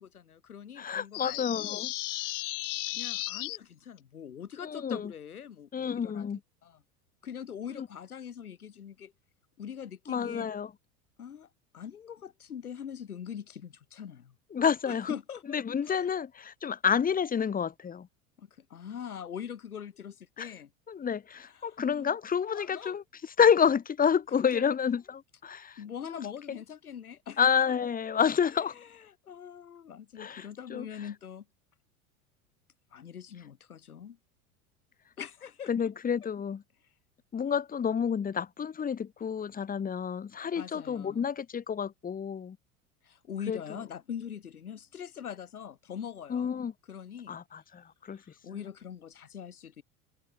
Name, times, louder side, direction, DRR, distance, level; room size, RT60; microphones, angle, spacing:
voice 1, 0.0-2.5 2.9-6.3 6.6-6.8 7.2-9.1 9.6-10.5 11.2-14.3 14.8-15.6 15.8-16.1 18.4-20.7 21.5-22.2 22.5-23.0 24.5-24.7 25.8-27.4 28.1-28.2 28.5-31.5 32.9-34.2 35.2-35.7 40.6-41.3 43.0-46.6 46.9-47.4 48.1-49.8, left 8 dB, 85° left, 3.1 m, -43 dB
voice 2, 0.8-1.9 4.6-5.1 5.7-6.4 7.8-7.9 10.1-10.7 14.5-15.1 15.5-18.1 20.4-20.5 20.9-23.0 23.4-25.8 26.0-26.2 27.4-28.7 30.2-30.9 35.7-36.6 37.3-42.6 43.5-43.8 46.3-46.7 47.3-48.2, left 7 dB, 20° left, 1.3 m, -29 dB
sound 1, 1.1-3.6, left 19 dB, 45° left, 1.8 m, -35 dB
hypercardioid pair, 85°, 43 cm